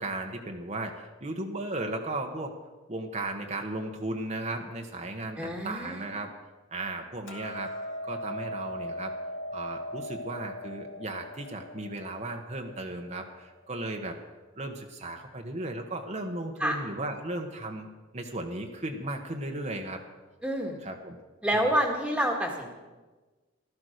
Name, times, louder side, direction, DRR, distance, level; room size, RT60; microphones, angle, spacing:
voice 1, 0.0-2.6 2.9-6.3 6.7-7.7 8.0-9.1 9.5-14.2 14.5-17.9 18.1-20.0 20.8-21.2 21.5-21.7, right 2 dB, 35° right, 3 dB, 1.2 m, -35 dB
voice 2, 5.4-6.1 16.6-16.7 20.4-20.8 21.4-22.7, equal, 5° right, 0 dB, 1.7 m, -28 dB
Hammer, 7.3-13.5, equal, 90° left, 2.2 m, -39 dB
15.5 x 13.0 x 6.6 m, 1.3 s
head